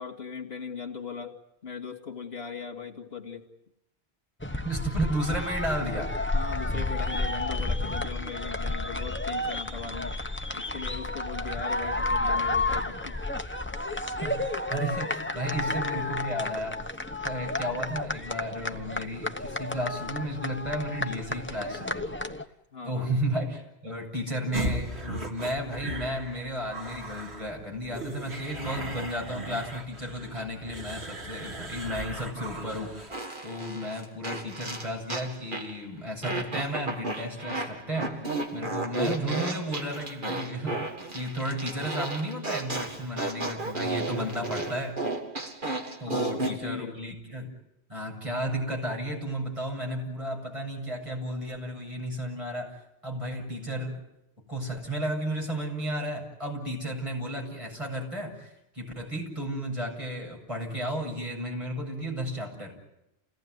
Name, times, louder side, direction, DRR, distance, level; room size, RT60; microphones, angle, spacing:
voice 1, 0.0-1.4 1.6-3.5 6.3-10.2 10.5-13.2 22.7-23.1 46.1-47.0, left 6 dB, 70° left, 3 dB, 2.5 m, -39 dB
sound 1, 4.4-22.4, left 2 dB, 10° left, 1.1 m, -31 dB
voice 2, 4.6-6.1 14.2-16.8 17.1-22.2 22.8-38.2 38.5-45.0 46.0-47.5 47.9-54.0 54.5-62.8, equal, 30° right, -1 dB, 8.1 m, -33 dB
sound 2, 24.5-33.2, right 2 dB, 90° right, 3.3 m, -37 dB
Fart, 33.1-35.8 36.2-46.6, right 2 dB, 50° right, 2.3 m, -33 dB
29.5 x 18.0 x 9.6 m, 0.85 s
omnidirectional pair, 1.1 m